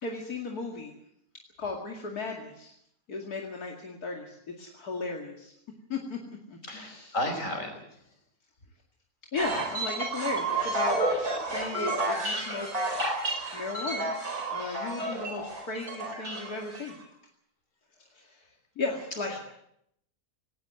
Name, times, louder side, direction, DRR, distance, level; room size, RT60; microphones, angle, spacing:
voice 1, 0.0-0.9 1.6-2.7 3.1-5.5 5.9-6.2 6.5-7.1 9.3-12.7 13.5-14.1 14.5-16.9 18.2-18.4 18.8-19.4, left 3 dB, 80° left, 0 dB, 2.8 m, -36 dB
voice 2, 6.6-7.8 19.3-19.4, left 1 dB, 55° left, 5 dB, 5.7 m, -33 dB
sound 1, 9.4-16.9, right 2 dB, 75° right, 5.3 m, -31 dB
19.0 x 18.5 x 7.9 m, 0.76 s
omnidirectional pair, 1.6 m